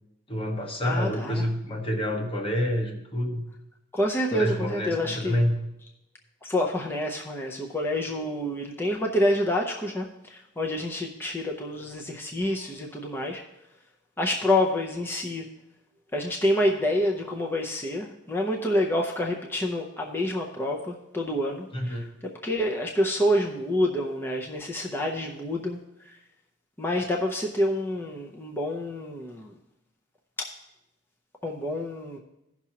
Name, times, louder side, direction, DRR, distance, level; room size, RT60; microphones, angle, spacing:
voice 1, 0.3-3.4 4.3-5.6 21.7-22.1, equal, 30° left, 3 dB, 1.2 m, -28 dB
voice 2, 0.8-1.5 3.9-5.4 6.4-13.4 14.2-15.4 16.1-26.2 26.8-29.5 30.4-30.5 31.4-32.2, left 1 dB, 10° left, 0 dB, 0.6 m, -28 dB
16.0 x 6.0 x 2.9 m, 0.87 s
head